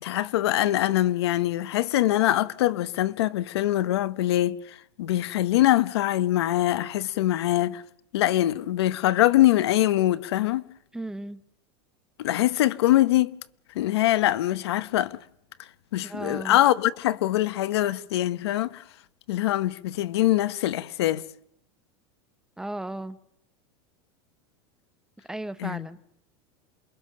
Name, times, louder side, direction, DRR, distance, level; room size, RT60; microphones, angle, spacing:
voice 1, 0.0-7.8 8.1-10.6 12.2-13.3 13.7-15.2 15.9-18.8 19.3-21.2 25.6-25.9, left 14 dB, 90° left, 1.0 m, -23 dB
voice 2, 10.9-11.4 16.0-16.6 22.6-23.2 25.3-26.0, right 1 dB, 5° right, 0.8 m, -35 dB
28.0 x 22.5 x 6.6 m
supercardioid pair, 145°, 13 cm